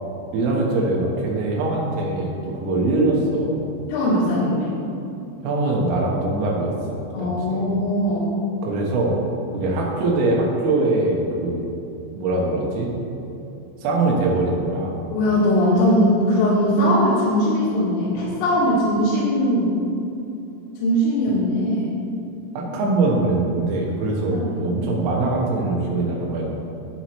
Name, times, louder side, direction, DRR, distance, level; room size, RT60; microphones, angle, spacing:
voice 1, 0.3-3.6 5.4-7.7 8.6-9.2 9.5-11.7 12.1-12.9 13.8-15.0 22.6-26.6, right 2 dB, 80° right, -2 dB, 4.0 m, -22 dB
voice 2, 3.9-4.7 7.1-8.3 15.1-19.7 20.8-21.9 24.3-24.5, equal, 90° left, -10 dB, 4.3 m, -20 dB
12.0 x 8.8 x 3.1 m, 2.8 s
omnidirectional pair, 5.8 m